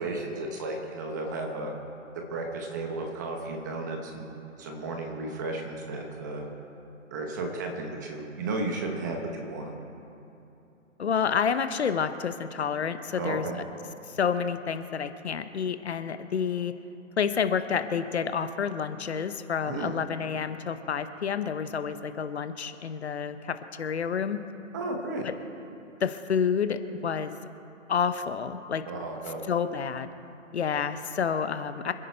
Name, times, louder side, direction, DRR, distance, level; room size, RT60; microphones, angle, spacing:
voice 1, 0.0-1.7 2.1-6.5 7.1-9.7 13.2-13.6 19.7-19.9 24.7-25.2 28.9-29.4, right 2 dB, 15° right, 2 dB, 0.8 m, -34 dB
voice 2, 11.0-13.5 14.2-16.7 17.2-24.4 25.2-25.3 26.0-27.3 27.9-28.8 29.5-30.1 30.5-31.9, left 7 dB, 55° left, 11 dB, 0.9 m, -29 dB
26.0 x 10.0 x 4.4 m, 2.8 s
hypercardioid pair, 160°, 39 cm